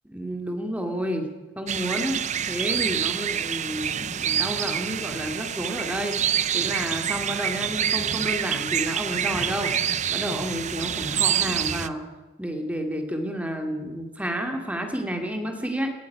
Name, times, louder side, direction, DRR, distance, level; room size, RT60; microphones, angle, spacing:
voice 1, 0.1-9.7 10.1-12.0 12.4-15.9, equal, 5° right, 4 dB, 2.4 m, -30 dB
sound 1, 1.7-11.9, right 9 dB, 35° right, 0.6 m, -27 dB
18.0 x 15.0 x 9.4 m, 1.1 s
head